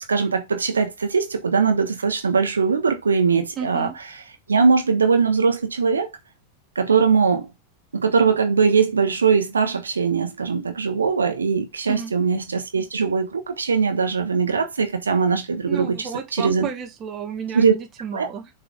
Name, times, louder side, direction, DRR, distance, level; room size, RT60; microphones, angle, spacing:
voice 1, 0.1-3.9 4.5-6.1 6.7-7.5 7.9-16.7 17.5-17.7 18.1-18.3, right 5 dB, 75° right, 1.2 m, -21 dB
voice 2, 3.6-4.0 11.9-12.1 15.7-18.5, right 7 dB, 30° right, 1.8 m, -32 dB
6.8 x 5.6 x 3.7 m
figure-of-eight pair, 90°, 0 cm